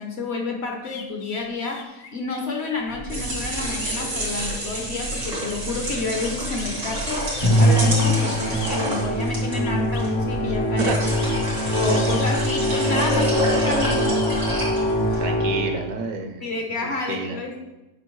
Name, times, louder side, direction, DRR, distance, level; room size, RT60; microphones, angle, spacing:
voice 1, 0.0-11.1 11.7-14.4 15.1-15.2 16.4-17.6, left 3 dB, 50° left, 2 dB, 0.9 m, -29 dB
sound 1, 0.8-10.1 10.9-14.4, left 5 dB, 70° left, 1.2 m, -42 dB
sound 2, 2.9-15.2, right 1 dB, 85° right, 2.8 m, -28 dB
Musical instrument, 7.4-16.0, equal, 30° left, 0.5 m, -23 dB
voice 2, 10.8-11.1 15.2-16.5 16.8-17.4, right 4 dB, 70° right, 4 dB, 1.2 m, -29 dB
8.6 x 5.0 x 3.1 m, 1.0 s
omnidirectional pair, 1.6 m